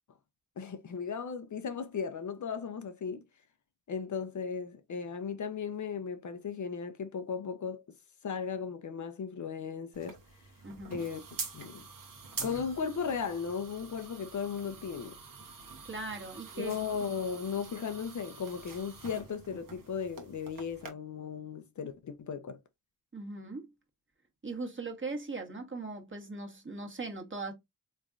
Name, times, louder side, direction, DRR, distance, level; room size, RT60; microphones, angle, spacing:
voice 1, 0.6-3.2 3.9-7.8 8.2-10.2 10.9-11.2 11.5-11.9 12.4-15.2 16.6-22.6, left 6 dB, 55° left, 0.6 m, -36 dB
sound 1, 9.9-20.9, right 5 dB, 65° right, 1.1 m, -46 dB
voice 2, 10.6-11.0 15.9-16.7 23.1-23.7 24.4-27.5, right 3 dB, 35° right, 1.3 m, -39 dB
3.5 x 3.1 x 2.5 m
cardioid pair, 50°, 36 cm